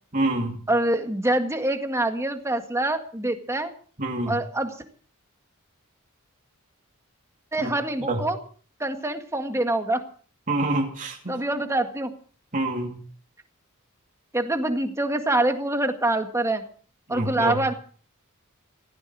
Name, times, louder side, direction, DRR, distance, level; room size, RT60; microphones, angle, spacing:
voice 1, 0.1-0.6 4.0-4.4 7.6-7.7 8.0-8.2 10.5-11.4 12.5-13.0 17.1-17.6, right 2 dB, 35° right, 0 dB, 2.7 m, -27 dB
voice 2, 0.7-3.7 4.3-4.7 7.5-8.4 8.8-10.0 11.3-12.1 14.3-16.6 17.1-17.7, right 1 dB, 15° right, 6 dB, 1.9 m, -25 dB
17.0 x 16.0 x 4.9 m, 0.44 s
head